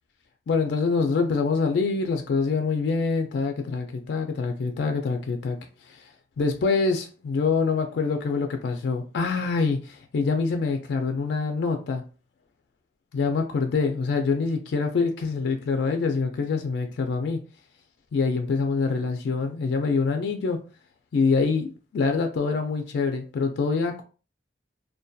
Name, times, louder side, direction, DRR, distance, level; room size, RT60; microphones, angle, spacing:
voice 1, 0.5-5.6 5.9-6.1 6.4-12.0 13.1-17.4 18.1-20.6 21.1-24.0, left 4 dB, 70° left, 0.3 m, -25 dB
2.6 x 2.2 x 2.2 m
head